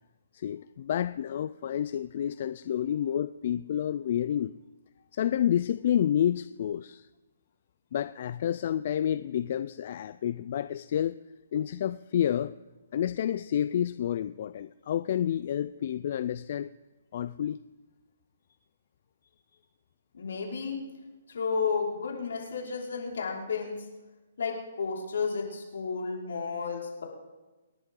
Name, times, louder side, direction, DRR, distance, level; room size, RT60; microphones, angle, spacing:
voice 1, 0.3-4.5 5.1-7.1 7.9-11.2 11.5-12.5 12.9-16.7 17.1-17.6, left 10 dB, 45° left, 14 dB, 0.4 m, -29 dB
voice 2, 20.1-20.8 21.3-23.8 24.4-27.0, left 5 dB, 75° left, -2 dB, 5.0 m, -32 dB
28.5 x 11.0 x 3.8 m, 1.2 s
hypercardioid pair, 160°, 0 cm